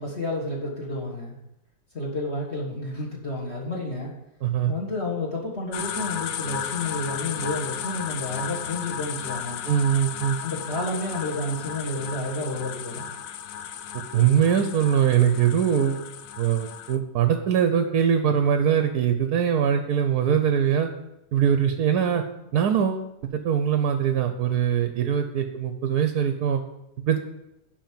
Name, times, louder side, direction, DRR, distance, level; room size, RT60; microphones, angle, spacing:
voice 1, 0.0-1.4 1.9-4.1 4.7-9.6 10.4-13.1, left 2 dB, 35° left, -1 dB, 1.8 m, -30 dB
voice 2, 4.4-4.7 9.7-10.4 13.9-16.1 16.4-20.9 21.3-22.2 22.5-26.6 27.1-27.2, right 8 dB, 65° right, 7 dB, 1.0 m, -22 dB
sound 1, 5.7-17.0, left 9 dB, 80° left, 0.7 m, -34 dB
7.4 x 5.4 x 7.4 m, 0.88 s
omnidirectional pair, 2.1 m